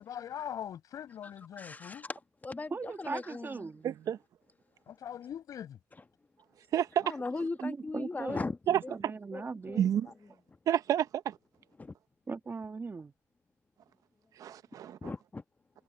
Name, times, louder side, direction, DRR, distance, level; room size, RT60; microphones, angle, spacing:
voice 1, 0.0-2.1 4.9-5.8, left 9 dB, 65° left, 5.8 m, -41 dB
voice 2, 1.2-3.7 7.0-8.9 9.3-10.1 11.8-11.9 15.0-15.4, left 3 dB, 25° left, 1.3 m, -39 dB
voice 3, 2.7-3.9 7.6-8.5 8.9-9.8 12.3-13.1, right 4 dB, 35° right, 2.3 m, -39 dB
voice 4, 3.8-4.2 6.7-7.1 8.7-8.8 9.8-10.1 10.7-11.4 14.4-15.1, right 10 dB, 70° right, 1.0 m, -29 dB
supercardioid pair, 60°, 6 cm